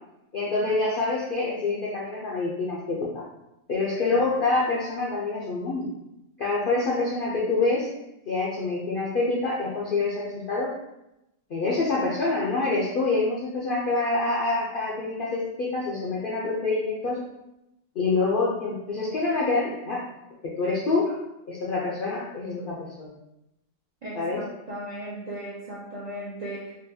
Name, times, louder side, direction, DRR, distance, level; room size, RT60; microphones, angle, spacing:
voice 1, 0.3-3.2 3.7-5.9 6.4-7.9 8.3-10.7 11.5-17.2 18.0-20.0 20.4-21.1 21.5-23.1 24.1-24.4, left 3 dB, 70° left, -5 dB, 0.5 m, -26 dB
voice 2, 24.0-26.8, right 1 dB, 65° right, -6 dB, 0.4 m, -36 dB
3.8 x 2.3 x 2.6 m, 0.89 s
omnidirectional pair, 1.5 m